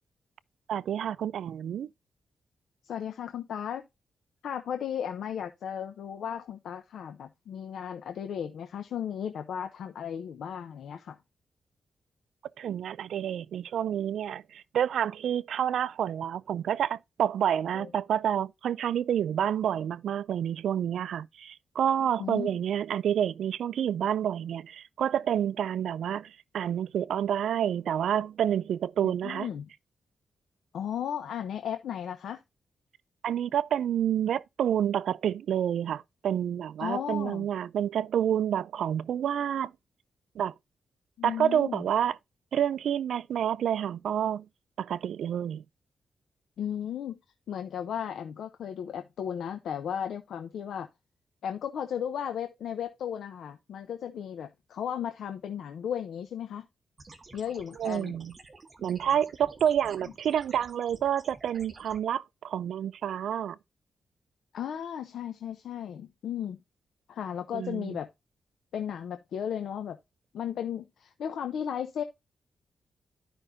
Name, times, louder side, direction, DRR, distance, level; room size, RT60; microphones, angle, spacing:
voice 1, 0.7-1.9 12.6-29.5 33.2-39.7 40.4-40.5 41.2-42.2 42.5-44.5 44.8-45.6 57.8-58.3 58.8-63.6 67.5-68.0, right 9 dB, 85° right, 0.4 m, -29 dB
voice 2, 2.8-3.8 4.4-11.2 17.7-17.9 22.2-22.5 29.0-29.7 30.7-32.4 36.8-37.5 41.2-41.8 46.6-47.2 47.5-50.9 51.4-56.6 57.3-58.1 64.5-66.6 67.1-68.1 68.7-70.0 70.3-72.0, left 9 dB, 90° left, 0.8 m, -35 dB
sound 1, 57.0-62.0, right 3 dB, 25° right, 1.3 m, -51 dB
12.0 x 5.3 x 2.7 m
wide cardioid pair, 165°, 0 cm